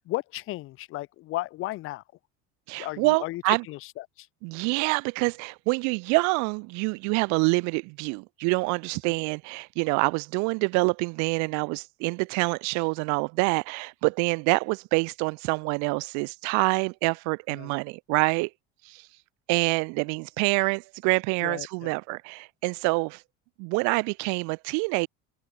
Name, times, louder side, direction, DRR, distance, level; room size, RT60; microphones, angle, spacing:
voice 1, 0.0-2.0 2.8-4.3 17.5-17.7 21.4-21.9, left 17 dB, 45° left, 0.5 m, -35 dB
voice 2, 2.7-3.6 4.4-18.5 18.9-19.0 19.5-23.2 23.6-25.1, right 33 dB, 75° right, 0.5 m, -26 dB
cardioid pair, 140°, 29 cm